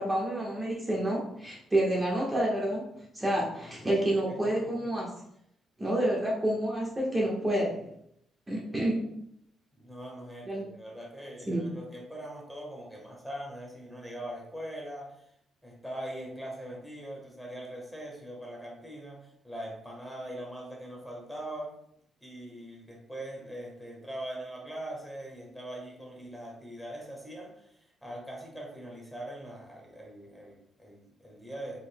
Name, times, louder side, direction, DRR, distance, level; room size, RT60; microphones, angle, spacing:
voice 1, 0.0-2.8 3.1-5.1 5.8-7.9 8.5-9.0 10.5-10.6 11.5-11.7, right 1 dB, 20° right, -4 dB, 1.4 m, -29 dB
voice 2, 3.7-4.9 9.7-15.3 15.6-21.7 22.2-31.8, right 1 dB, ahead, -2 dB, 1.5 m, -42 dB
4.8 x 4.1 x 2.3 m, 0.73 s
cardioid pair, 75°, 0 cm